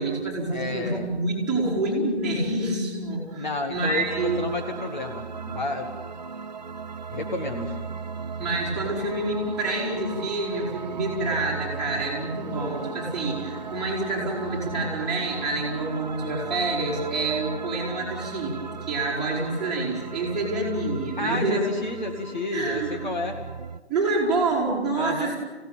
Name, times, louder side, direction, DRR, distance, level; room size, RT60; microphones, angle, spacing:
voice 1, 0.0-4.4 8.4-18.6 18.9-21.6 22.5-23.0 23.9-25.4, right 2 dB, ahead, -8 dB, 3.8 m, -27 dB
voice 2, 0.5-1.1 3.4-5.9 7.1-7.8 21.2-23.4 25.0-25.3, left 2 dB, 45° left, 3 dB, 2.1 m, -31 dB
sound 1, 3.8-23.8, right 5 dB, 40° right, 0.8 m, -37 dB
26.5 x 17.0 x 8.9 m, 1.4 s
figure-of-eight pair, 155°, 34 cm